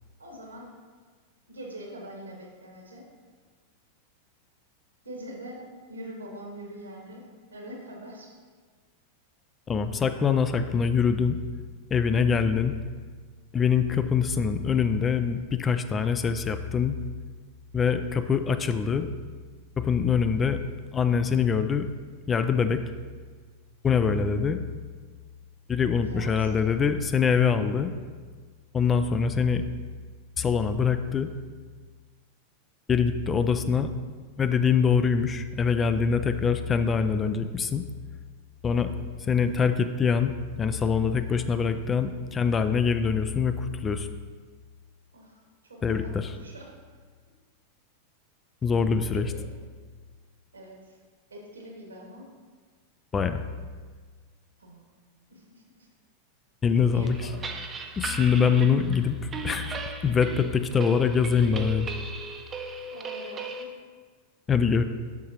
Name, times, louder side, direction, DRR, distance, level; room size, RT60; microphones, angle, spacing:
voice 1, 0.2-0.7 1.5-3.1 5.0-5.6 5.9-7.2 7.5-8.3 26.0-26.6 33.6-33.7 45.1-46.7 49.1-49.4 50.5-51.0 51.3-52.3 54.6-54.8 55.3-55.9 56.6-57.6 62.9-63.7, right 1 dB, 75° right, 0 dB, 1.4 m, -44 dB
voice 2, 9.7-11.4 11.9-12.7 13.5-17.0 17.7-19.1 19.8-20.6 20.9-21.9 22.3-22.8 23.8-24.6 25.7-27.9 28.7-29.6 30.4-31.3 32.9-33.9 34.4-37.8 38.6-38.9 39.3-40.3 40.6-44.1 45.8-46.3 48.6-49.3 53.1-53.4 56.6-57.2 58.0-59.1 59.4-61.9 64.5-64.8, left 6 dB, 20° left, 9 dB, 0.3 m, -24 dB
sound 1, 57.0-63.7, right 4 dB, 20° right, 0.6 m, -37 dB
7.0 x 6.5 x 2.9 m, 1.5 s
figure-of-eight pair, 90°, 0 cm